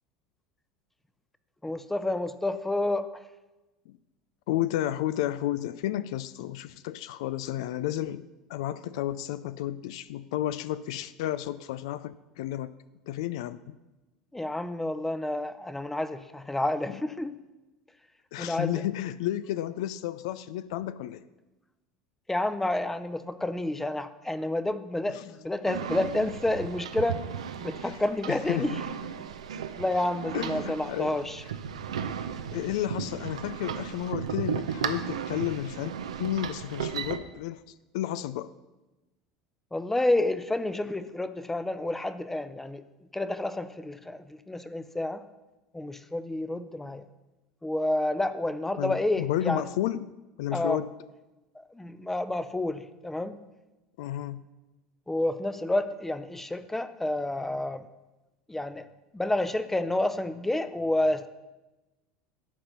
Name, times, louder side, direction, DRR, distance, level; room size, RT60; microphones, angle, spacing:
voice 1, 1.6-3.1 14.3-17.3 18.4-18.8 22.3-27.2 27.6-28.7 29.8-31.4 39.7-42.8 43.1-45.2 45.7-47.0 47.6-49.6 50.5-50.8 51.7-53.3 55.1-57.8 58.5-58.8 59.1-61.3, left 1 dB, 10° left, 12 dB, 0.6 m, -29 dB
voice 2, 4.5-12.7 13.1-13.8 16.9-17.0 18.3-21.2 25.1-25.3 27.8-28.0 28.3-28.8 30.3-31.2 32.5-35.9 36.2-37.6 37.9-38.5 48.8-50.1 50.4-50.9 54.0-54.4, left 13 dB, 70° left, 15 dB, 0.3 m, -32 dB
sound 1, 25.6-37.2, right 8 dB, 85° right, 0.6 m, -35 dB
11.5 x 4.3 x 6.9 m, 1.1 s
hypercardioid pair, 80°, 3 cm